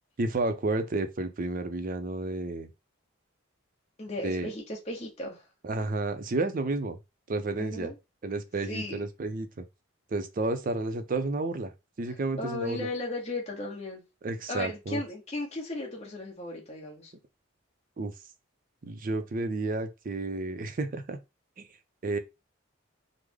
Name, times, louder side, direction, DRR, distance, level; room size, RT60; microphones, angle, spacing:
voice 1, 0.2-2.7 4.2-4.5 5.6-7.0 7.3-7.9 8.2-9.6 10.1-11.7 12.0-12.9 14.2-15.0 18.0-18.1 18.8-21.2 21.6-21.7 22.0-22.2, right 2 dB, 45° right, 0.4 m, -31 dB
voice 2, 4.0-5.4 7.6-7.9 8.7-9.0 12.4-14.0 14.5-17.1, left 2 dB, 35° left, 1.0 m, -36 dB
3.2 x 2.0 x 3.5 m
head